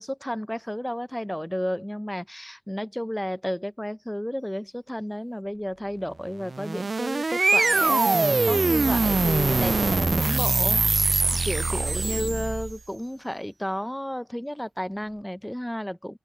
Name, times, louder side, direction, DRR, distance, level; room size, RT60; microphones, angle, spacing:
voice 1, 0.0-16.2, equal, 5° left, 0.7 m, -32 dB
sound 1, 6.4-12.8, right 3 dB, 50° right, 0.3 m, -23 dB
open air
cardioid pair, 55°, 0 cm